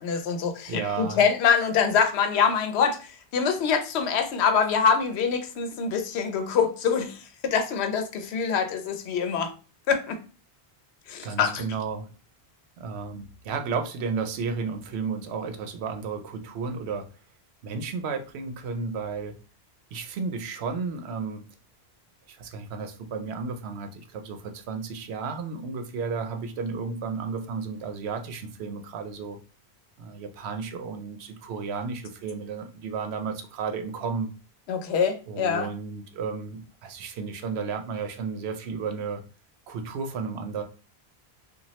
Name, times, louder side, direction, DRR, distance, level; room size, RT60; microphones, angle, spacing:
voice 1, 0.0-9.5 9.9-10.2 11.1-11.6 34.7-35.7, left 6 dB, 85° left, 0.8 m, -25 dB
voice 2, 0.7-1.2 11.2-12.1 12.8-17.0 17.6-19.3 19.9-21.4 22.3-29.4 30.0-34.3 35.3-39.2 39.7-40.6, right 5 dB, 85° right, 0.8 m, -33 dB
3.0 x 2.3 x 2.8 m
omnidirectional pair, 1.1 m